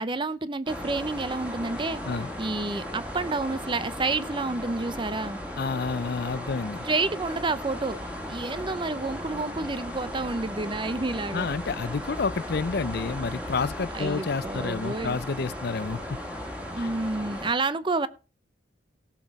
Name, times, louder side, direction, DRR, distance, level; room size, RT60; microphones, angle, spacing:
voice 1, 0.0-2.0 2.4-5.4 6.8-8.0 8.2-11.5 13.9-15.2 16.7-18.1, right 3 dB, 25° right, 0.5 m, -29 dB
sound 1, 0.7-17.5, equal, 5° right, 2.3 m, -36 dB
voice 2, 5.6-6.8 11.3-16.2 16.8-16.9, left 4 dB, 50° left, 0.5 m, -29 dB
17.5 x 6.1 x 4.8 m
head